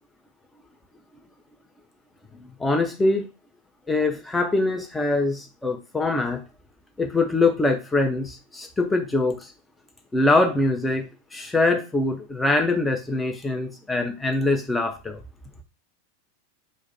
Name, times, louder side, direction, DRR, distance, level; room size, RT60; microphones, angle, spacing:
voice 1, 2.4-3.3 3.9-6.4 7.0-9.5 10.1-15.2, left 2 dB, 10° left, 3 dB, 0.6 m, -23 dB
2.4 x 2.2 x 3.9 m, 0.29 s
figure-of-eight pair, 90°, 0 cm